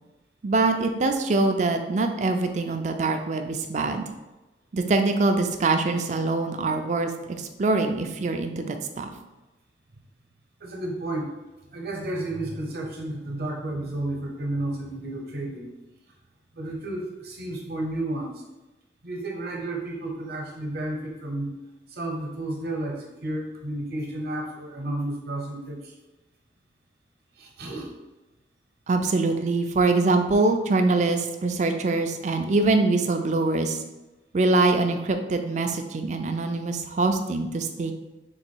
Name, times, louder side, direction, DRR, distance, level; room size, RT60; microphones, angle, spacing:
voice 1, 0.4-4.0 4.7-9.1 28.9-33.8 34.3-37.9, right 3 dB, 40° right, 6 dB, 0.4 m, -24 dB
voice 2, 10.6-11.3 11.7-15.7 16.5-18.3 19.0-21.5 21.9-25.9 27.4-27.9, right 1 dB, 60° right, 0 dB, 0.9 m, -32 dB
3.9 x 2.6 x 4.5 m, 1.0 s
head